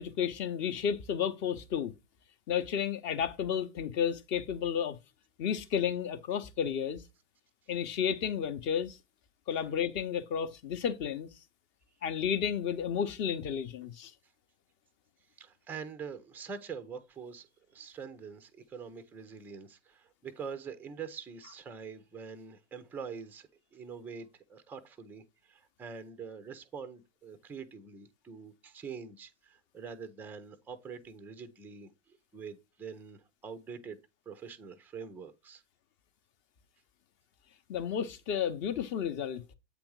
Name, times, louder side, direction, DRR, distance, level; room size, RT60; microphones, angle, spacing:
voice 1, 0.0-1.9 2.5-5.0 5.4-7.0 7.7-9.0 9.5-11.3 12.0-14.1 37.7-39.4, left 8 dB, 30° left, 0.8 m, -32 dB
voice 2, 15.4-34.0 34.3-35.6, right 6 dB, 5° right, 0.4 m, -45 dB
8.0 x 3.5 x 4.6 m
hypercardioid pair, 115°, 37 cm